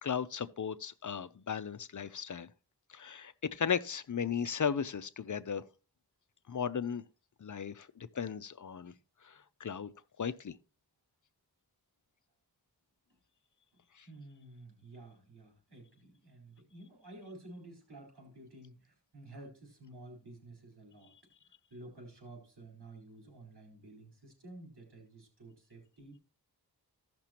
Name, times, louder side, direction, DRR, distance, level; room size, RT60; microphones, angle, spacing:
voice 1, 0.0-2.5 2.9-5.6 6.5-7.0 7.4-8.9 9.2-9.9 10.2-10.6 14.0-14.1, left 7 dB, 50° left, 0.6 m, -36 dB
voice 2, 14.1-21.1 21.7-26.2, right 2 dB, 90° right, 4.0 m, -52 dB
15.5 x 6.0 x 2.9 m
wide cardioid pair, 70°, 39 cm